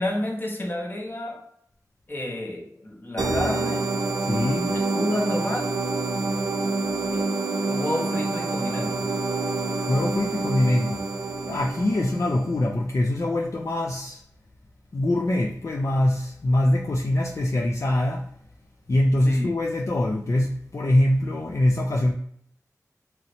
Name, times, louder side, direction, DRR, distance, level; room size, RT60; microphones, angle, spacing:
voice 1, 0.0-1.4 2.1-4.0 4.6-5.6 7.1-7.4 7.7-9.1 19.3-19.5, left 1 dB, 35° left, 0.9 m, -30 dB
sound 1, 3.2-12.5, right 3 dB, 80° right, 0.4 m, -27 dB
voice 2, 4.3-4.8 9.9-14.2 14.9-18.3 18.9-22.1, left 1 dB, 55° left, 0.4 m, -23 dB
3.0 x 2.7 x 2.6 m
wide cardioid pair, 45°, 6 cm